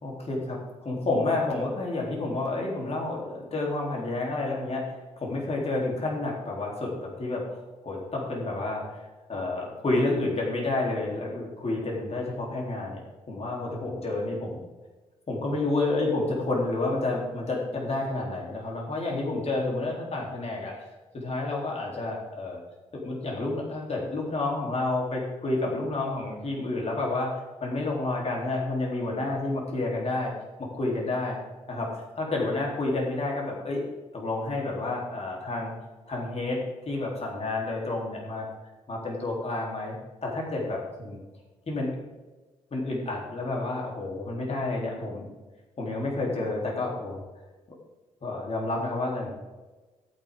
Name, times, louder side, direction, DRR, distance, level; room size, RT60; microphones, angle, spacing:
voice 1, 0.0-4.8 5.2-7.4 7.8-9.0 9.3-14.6 15.3-20.8 21.1-22.6 22.9-27.3 27.6-30.3 30.6-31.4 31.7-33.8 34.1-35.7 36.1-36.6 36.9-38.5 38.9-41.2 41.7-42.0 42.7-45.3 45.8-47.2 48.2-49.3, left 2 dB, 45° left, -2 dB, 3.7 m, -30 dB
14.0 x 8.8 x 3.9 m, 1.2 s
hypercardioid pair, 45°, 15 cm